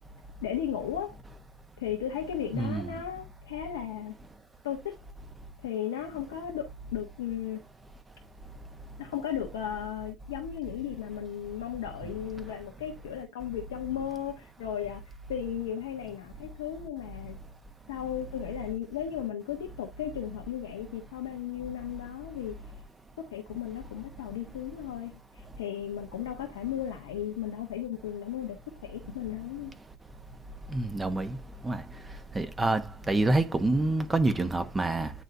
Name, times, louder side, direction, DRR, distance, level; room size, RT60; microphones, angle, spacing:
voice 1, 0.4-1.1 1.8-4.2 4.6-5.0 5.6-7.6 9.0-15.0 15.3-17.4 17.9-22.6 23.3-29.7, left 10 dB, 85° left, 1.1 m, -35 dB
voice 2, 2.5-3.0 30.7-31.4 31.6-31.8 32.3-35.1, right 2 dB, 20° right, 1.2 m, -27 dB
8.9 x 3.8 x 2.7 m
hypercardioid pair, 65°, 0 cm